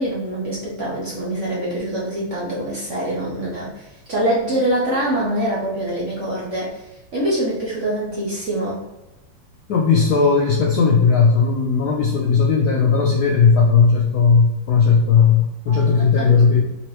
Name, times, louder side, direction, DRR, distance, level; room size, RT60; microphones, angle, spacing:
voice 1, 0.0-6.8 7.1-8.8 15.7-15.8 16.2-16.6, right 1 dB, 55° right, -6 dB, 0.8 m, -24 dB
voice 2, 9.7-16.6, left 5 dB, 75° left, -2 dB, 0.9 m, -16 dB
3.7 x 3.0 x 3.1 m, 1.0 s
omnidirectional pair, 2.2 m